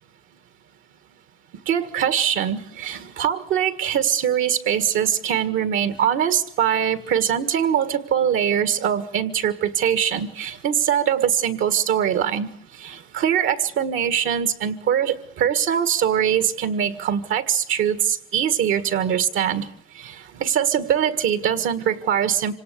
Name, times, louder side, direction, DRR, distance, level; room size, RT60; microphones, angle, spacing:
voice 1, 1.7-12.5 12.8-18.0 18.3-19.6 20.4-22.6, right 9 dB, 85° right, 12 dB, 1.8 m, -22 dB
26.0 x 18.0 x 8.4 m, 0.68 s
cardioid pair, 90°, 20 cm